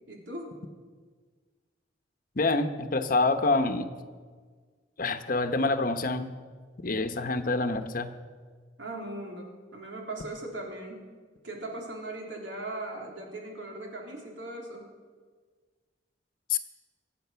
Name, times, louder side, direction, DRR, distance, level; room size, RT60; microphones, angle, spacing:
voice 1, 0.1-0.5 8.8-11.1 11.4-14.9, right 2 dB, 85° right, 0 dB, 3.4 m, -39 dB
voice 2, 2.4-3.9 5.0-6.3 6.8-8.1 16.5-16.6, left 3 dB, 50° left, 9 dB, 0.9 m, -26 dB
23.5 x 8.5 x 5.7 m, 1.5 s
head